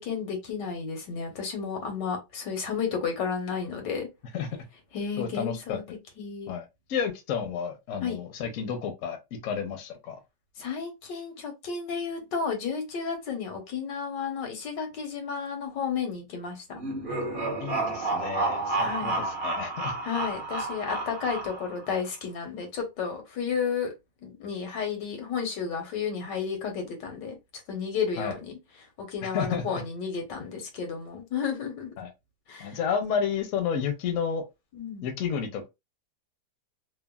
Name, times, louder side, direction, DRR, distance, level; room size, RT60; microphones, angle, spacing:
voice 1, 0.0-4.1 4.9-5.8 6.2-6.5 8.0-8.2 10.6-16.8 18.7-19.2 20.0-23.9 24.2-27.4 27.7-28.5 29.0-31.9 32.5-32.8 34.7-35.0, left 6 dB, 85° left, 1.6 m, -32 dB
voice 2, 5.2-5.8 6.5-10.2 17.1-19.9 28.2-28.3 29.2-29.8 32.0-32.1 32.6-34.4 35.0-35.7, left 7 dB, 60° left, 0.9 m, -31 dB
sound 1, 16.7-21.9, right 2 dB, 40° right, 0.8 m, -30 dB
3.4 x 2.2 x 2.2 m
omnidirectional pair, 1.8 m